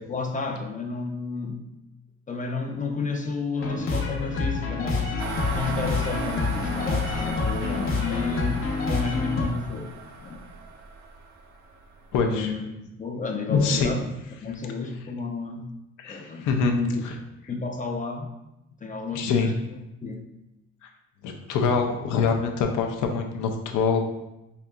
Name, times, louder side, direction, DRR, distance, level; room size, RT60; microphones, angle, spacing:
voice 1, 0.0-1.7 2.3-5.2 5.5-9.9 10.2-10.4 12.3-12.7 13.0-15.7 16.0-17.0 17.5-18.3 18.8-19.6 20.0-20.2, left 4 dB, 25° left, 4 dB, 0.4 m, -32 dB
sound 1, 3.6-9.4, left 4 dB, 45° left, 0.8 m, -27 dB
sound 2, 5.2-12.2, right 4 dB, 65° right, 0.5 m, -38 dB
voice 2, 12.1-12.5 13.5-13.9 16.0-16.7 17.0-17.1 19.1-19.5 21.2-24.0, left 5 dB, 90° left, 4 dB, 0.5 m, -24 dB
4.7 x 2.7 x 2.2 m, 0.93 s
cardioid pair, 90°, 30 cm